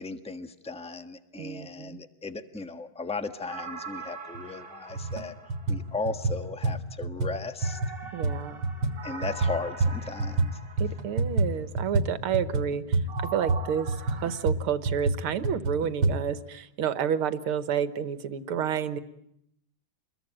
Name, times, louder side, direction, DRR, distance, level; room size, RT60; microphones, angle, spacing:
voice 1, 0.0-5.3 5.7-7.8 9.0-10.5, left 3 dB, 5° left, 8 dB, 1.0 m, -36 dB
voice 2, 1.4-2.0 8.1-8.6 10.8-19.0, right 8 dB, 90° right, 12 dB, 2.1 m, -30 dB
sound 1, 3.5-6.3 7.6-11.4 13.1-14.4, right 4 dB, 25° right, 2.4 m, -42 dB
sound 2, 4.4-4.5 4.9-5.2 5.5-10.5 10.8-16.2, right 3 dB, 65° right, 2.6 m, -28 dB
28.5 x 22.0 x 9.0 m, 0.76 s
omnidirectional pair, 2.3 m